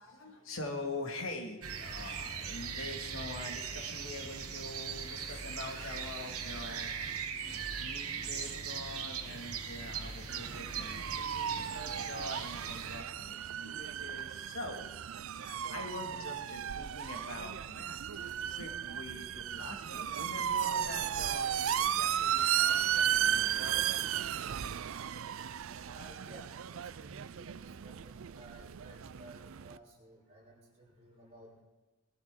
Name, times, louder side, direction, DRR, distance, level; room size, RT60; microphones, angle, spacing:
voice 1, 0.0-7.0 7.5-13.4 13.6-14.9 15.4-24.2, left 2 dB, 65° left, 4 dB, 2.0 m, -44 dB
sound 1, 1.6-13.0, right 7 dB, 85° right, 1.4 m, -40 dB
sound 2, 5.1-11.2, left 1 dB, 45° left, 3.1 m, -52 dB
sound 3, 10.3-29.8, right 9 dB, 65° right, 0.4 m, -35 dB
voice 2, 25.8-31.6, right 1 dB, 30° right, -5 dB, 5.0 m, -55 dB
20.0 x 12.5 x 3.7 m, 1.2 s
head